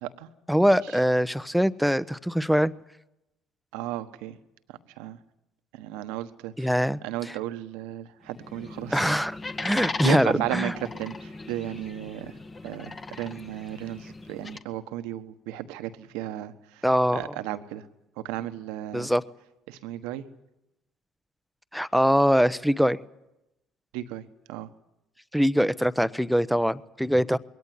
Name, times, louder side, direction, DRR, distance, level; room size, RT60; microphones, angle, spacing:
voice 1, 0.5-2.7 6.6-7.0 8.9-9.3 9.6-10.7 16.8-17.2 18.9-19.2 21.7-23.0 25.3-27.4, equal, ahead, 1.0 m, -22 dB
voice 2, 3.7-4.4 4.7-5.2 5.7-9.2 9.7-12.4 12.6-16.8 17.1-17.9 18.2-19.1 19.7-20.2 23.9-24.7, right 13 dB, 75° right, 1.3 m, -34 dB
sound 1, 8.3-14.6, left 3 dB, 30° left, 1.9 m, -38 dB
21.5 x 17.5 x 9.8 m
hypercardioid pair, 65°, 0 cm